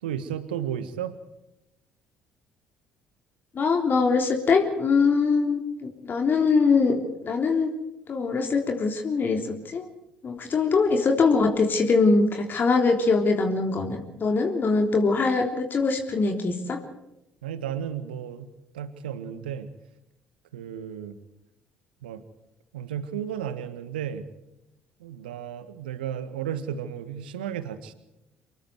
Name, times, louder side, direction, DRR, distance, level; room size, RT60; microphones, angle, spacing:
voice 1, 0.0-1.2 17.4-18.5 18.7-19.7 20.5-21.2 22.0-22.2 22.7-24.2 25.0-27.9, right 9 dB, 75° right, 12 dB, 1.6 m, -33 dB
voice 2, 3.5-7.7 8.1-9.9 10.2-16.8, left 4 dB, 40° left, 3 dB, 3.6 m, -23 dB
26.5 x 22.0 x 4.7 m, 0.89 s
figure-of-eight pair, 50°, 5 cm